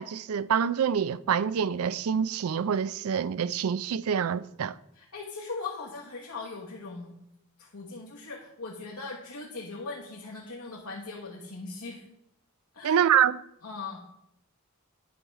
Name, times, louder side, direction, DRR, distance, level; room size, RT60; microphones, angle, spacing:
voice 1, 0.0-4.8 12.8-13.4, right 8 dB, 80° right, 0.4 m, -26 dB
voice 2, 4.9-7.2 7.6-12.1 12.7-13.0 13.6-14.1, left 3 dB, 90° left, 1.5 m, -39 dB
10.0 x 5.5 x 4.7 m
head